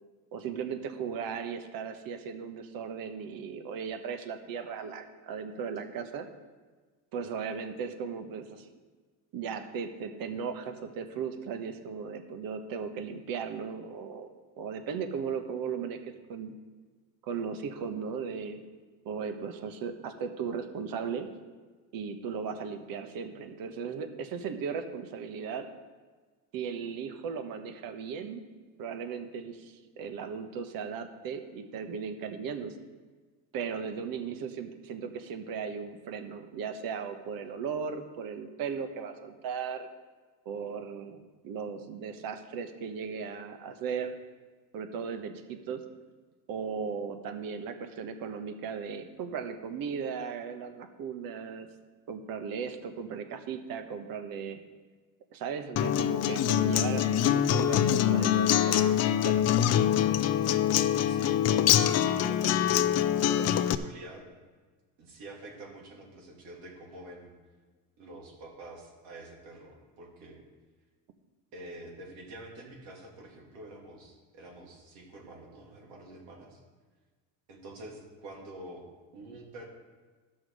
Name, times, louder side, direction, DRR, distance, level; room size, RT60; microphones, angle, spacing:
voice 1, 0.3-6.3 7.1-8.7 9.3-14.3 14.6-16.5 17.2-18.6 19.0-21.3 21.9-25.7 26.5-28.4 28.8-32.7 33.5-39.9 40.4-44.1 44.7-45.8 46.5-51.7 52.1-54.6 55.3-59.4, right 6 dB, 60° right, 7 dB, 1.3 m, -37 dB
Acoustic guitar, 55.8-63.7, left 10 dB, 40° left, 0.6 m, -24 dB
voice 2, 61.0-61.6 61.9-62.9 63.2-64.3 65.0-67.3 68.0-70.4 71.5-76.6 77.5-78.9 79.1-79.7, right 1 dB, 80° right, -1 dB, 3.0 m, -47 dB
13.0 x 6.2 x 4.9 m, 1.4 s
supercardioid pair, 105°, 40 cm